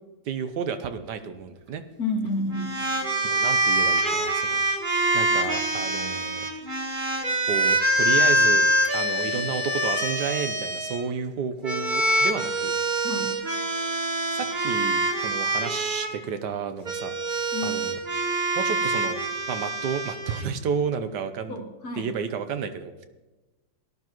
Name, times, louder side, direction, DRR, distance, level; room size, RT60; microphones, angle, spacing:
voice 1, 0.3-1.8 3.2-4.6 5.1-6.5 7.5-8.6 8.9-12.7 14.3-17.1 17.6-18.0 18.5-19.2 19.5-21.6 22.0-23.0, right 6 dB, 75° right, 9 dB, 1.4 m, -31 dB
voice 2, 2.0-2.8 13.0-13.4 17.5-17.8 21.5-22.1, left 2 dB, 60° left, 3 dB, 2.0 m, -30 dB
sound 1, 2.5-11.0 11.6-16.1 16.8-20.4, right 1 dB, 30° right, 1.4 m, -25 dB
17.5 x 11.5 x 3.0 m, 1.1 s
omnidirectional pair, 1.9 m